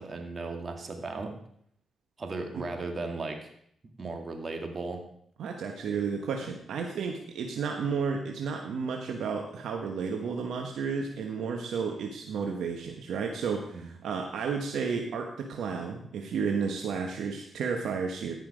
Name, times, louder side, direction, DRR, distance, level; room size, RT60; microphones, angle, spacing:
voice 1, 0.0-1.4 2.2-3.5 4.0-5.0 13.7-13.9, right 3 dB, 45° right, 4 dB, 2.1 m, -36 dB
voice 2, 5.4-18.4, right 5 dB, 80° right, 3 dB, 1.0 m, -32 dB
14.5 x 5.7 x 5.0 m, 0.67 s
supercardioid pair, 60°, 0 cm